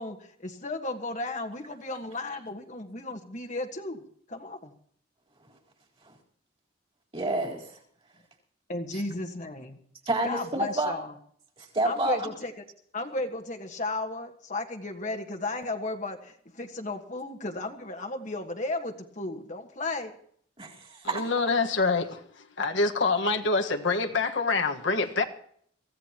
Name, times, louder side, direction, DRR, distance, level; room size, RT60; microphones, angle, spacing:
voice 1, 0.0-4.0 4.3-4.7 8.7-9.8 10.2-11.1 11.8-12.6 12.9-20.1, left 2 dB, 40° left, 1.6 m, -34 dB
voice 2, 7.1-7.8 8.9-9.0 10.1-10.9 11.6-12.3 20.6-21.2, right 2 dB, 30° right, 4.0 m, -29 dB
voice 3, 21.1-22.2 22.6-25.2, left 3 dB, 65° left, 1.5 m, -25 dB
24.0 x 16.5 x 3.0 m
head